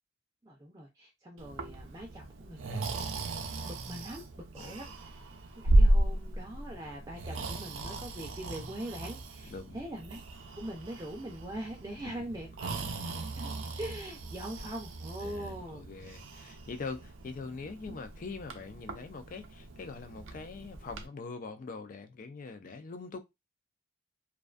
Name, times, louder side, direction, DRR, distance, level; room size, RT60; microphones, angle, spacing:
voice 1, 0.4-2.9 3.7-5.2 5.6-10.2 10.5-12.7 13.4-13.5 13.8-15.8 17.9-18.0, right 1 dB, 20° right, 0.4 m, -42 dB
Breathing, 1.4-21.1, right 1 dB, 85° right, 0.5 m, -34 dB
voice 2, 15.2-23.2, left 4 dB, 45° left, 0.4 m, -43 dB
2.4 x 2.3 x 2.3 m
head